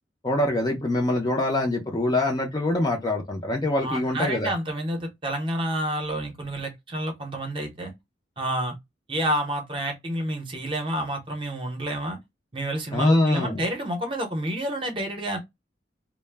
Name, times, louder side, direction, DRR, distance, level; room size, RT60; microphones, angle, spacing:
voice 1, 0.2-4.5 12.9-13.6, left 1 dB, 20° left, 0.4 m, -24 dB
voice 2, 3.8-7.9 8.4-8.7 9.1-12.2 12.5-15.4, right 1 dB, 25° right, 0.6 m, -29 dB
2.0 x 2.0 x 3.2 m
head